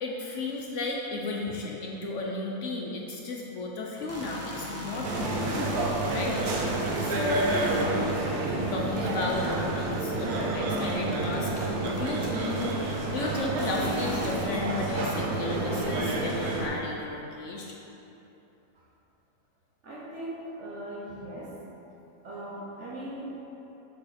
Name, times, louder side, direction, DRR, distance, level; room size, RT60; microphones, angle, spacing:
voice 1, 0.0-5.7 6.1-6.3 6.7-7.6 8.6-17.7, left 3 dB, 60° left, -2 dB, 0.9 m, -34 dB
sound 1, 4.0-14.4, equal, 25° right, 0.3 m, -41 dB
sound 2, 5.0-16.7, right 2 dB, 90° right, 1.4 m, -29 dB
voice 2, 19.8-21.6 22.2-23.4, right 1 dB, 55° right, -4 dB, 1.3 m, -39 dB
7.3 x 5.1 x 4.2 m, 3.0 s
omnidirectional pair, 1.6 m